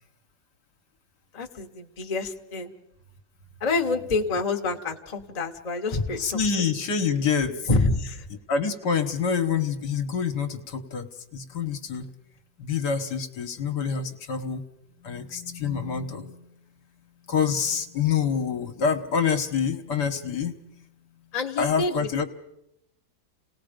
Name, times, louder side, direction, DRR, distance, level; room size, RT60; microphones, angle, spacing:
voice 1, 1.3-2.7 3.6-6.4 7.7-8.2 21.3-22.1, left 3 dB, 25° left, 3 dB, 1.1 m, -27 dB
voice 2, 6.2-7.7 8.5-12.1 12.6-14.6 15.0-16.5 17.3-20.7 21.6-22.2, left 6 dB, 65° left, 5 dB, 1.8 m, -27 dB
29.0 x 18.5 x 5.2 m, 0.81 s
omnidirectional pair, 2.0 m